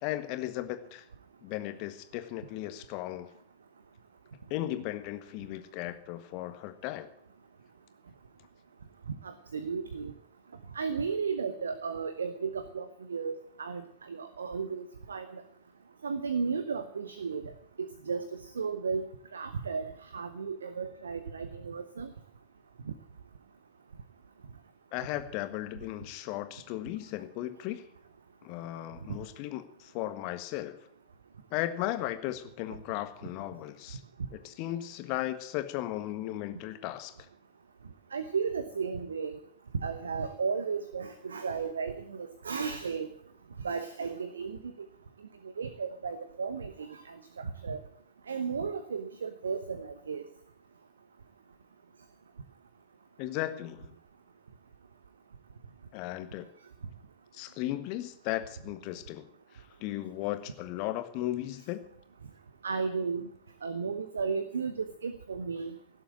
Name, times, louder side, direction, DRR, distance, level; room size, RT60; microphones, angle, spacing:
voice 1, 0.0-1.0 1.4-3.3 4.5-7.1 24.9-27.8 28.4-30.8 31.5-34.0 34.3-37.1 53.2-54.0 55.9-56.5 57.3-59.3 59.8-61.8, left 14 dB, 45° left, 9 dB, 1.5 m, -36 dB
voice 2, 9.2-10.1 10.7-15.4 16.0-17.5 17.8-22.1 22.9-23.0 38.1-39.4 39.7-43.1 43.6-44.6 45.6-47.8 48.3-50.2 62.6-63.3 63.6-65.7, right 5 dB, 70° right, 12 dB, 0.9 m, -34 dB
17.0 x 7.7 x 8.9 m, 0.67 s
figure-of-eight pair, 90°, 0 cm